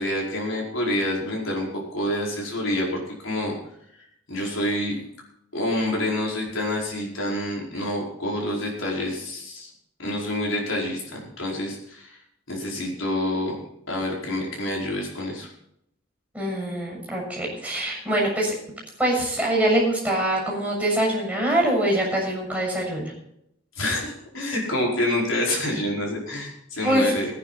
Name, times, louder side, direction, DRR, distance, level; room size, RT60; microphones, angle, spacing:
voice 1, 0.0-3.5 4.3-4.9 5.5-9.7 10.0-12.2 12.5-13.6 13.9-15.5 23.8-27.3, left 1 dB, 75° left, -2 dB, 5.0 m, -27 dB
voice 2, 16.3-18.5 19.0-23.1 26.8-27.1, right 1 dB, 5° right, -2 dB, 6.8 m, -24 dB
17.5 x 10.0 x 4.2 m, 0.76 s
head